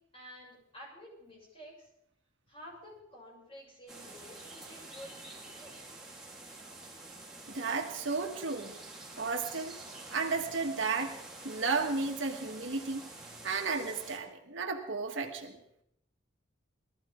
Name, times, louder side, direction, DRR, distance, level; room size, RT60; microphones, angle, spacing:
voice 1, 0.1-1.9 2.5-5.9, equal, 30° left, -5 dB, 7.3 m, -51 dB
sound 1, 3.9-14.2, right 2 dB, 5° right, 2.1 m, -48 dB
voice 2, 7.5-8.7 9.2-9.8 10.1-11.2 11.4-13.0 13.4-15.6, right 4 dB, 70° right, 3 dB, 1.6 m, -33 dB
21.0 x 14.0 x 3.8 m, 0.77 s
head